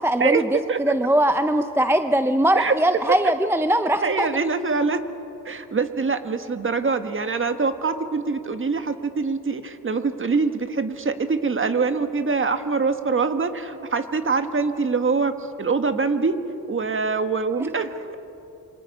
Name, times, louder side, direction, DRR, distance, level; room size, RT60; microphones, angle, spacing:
voice 1, 0.0-4.3, right 1 dB, 5° right, 9 dB, 0.7 m, -21 dB
voice 2, 4.0-5.0 5.4-15.3 15.6-16.4 16.7-18.1, right 4 dB, 35° right, 8 dB, 1.5 m, -24 dB
27.5 x 24.5 x 5.5 m, 2.8 s
cardioid pair, 100°, 35 cm